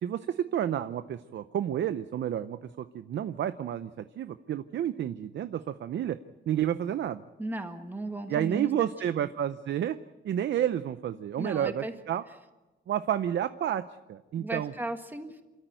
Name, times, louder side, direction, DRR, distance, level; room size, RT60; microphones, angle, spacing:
voice 1, 0.0-3.9 4.2-6.2 6.5-7.2 8.3-10.0 10.2-12.2 12.9-13.8 14.1-14.7, right 10 dB, 65° right, 11 dB, 0.7 m, -30 dB
voice 2, 7.4-8.7 9.0-9.3 11.4-11.9 14.4-15.4, right 2 dB, 10° right, 6 dB, 1.6 m, -36 dB
28.0 x 13.5 x 9.1 m, 1.1 s
wide cardioid pair, 160°, 20 cm